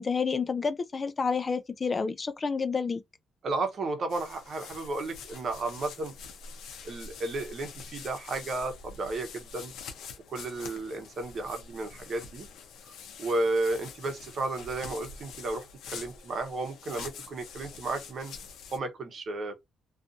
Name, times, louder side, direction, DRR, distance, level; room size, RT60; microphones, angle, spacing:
voice 1, 0.0-3.0, left 5 dB, 35° left, 0.3 m, -29 dB
voice 2, 3.4-6.1 6.8-9.7 10.3-12.5 13.2-18.3 18.7-19.5, right 2 dB, 55° right, 0.8 m, -33 dB
sound 1, 4.1-18.8, left 6 dB, 85° left, 0.6 m, -46 dB
2.5 x 2.4 x 2.5 m
cardioid pair, 90°, 0 cm